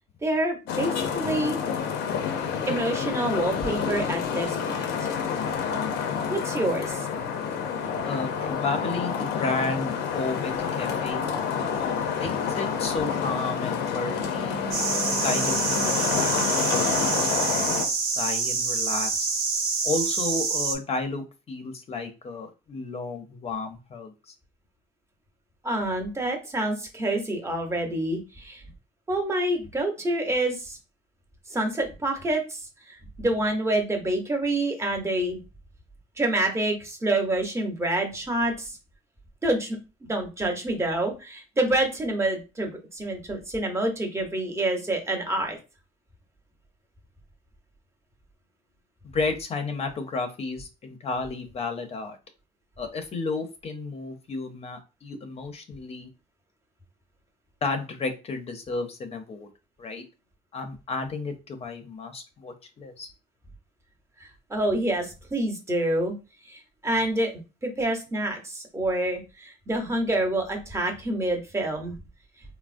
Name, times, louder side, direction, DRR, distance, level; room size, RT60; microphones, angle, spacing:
voice 1, 0.2-1.6 2.7-5.1 6.3-7.1 25.6-28.6 29.1-30.8 31.5-35.4 36.2-38.8 39.4-45.6 64.2-66.1 66.5-71.9, right 1 dB, 15° right, 2 dB, 0.8 m, -27 dB
Traffic noise roadway noise, 0.7-17.9, left 6 dB, 85° left, 0.5 m, -28 dB
voice 2, 8.1-11.2 12.2-14.6 15.2-17.2 18.2-19.3 19.8-24.3 49.1-52.2 52.8-56.1 57.6-59.5 59.8-60.0 60.5-63.1, left 3 dB, 35° left, 6 dB, 0.6 m, -32 dB
sound 1, 14.7-20.8, right 4 dB, 65° right, 0.7 m, -26 dB
3.4 x 2.0 x 2.5 m, 0.30 s
cardioid pair, 110°, 17 cm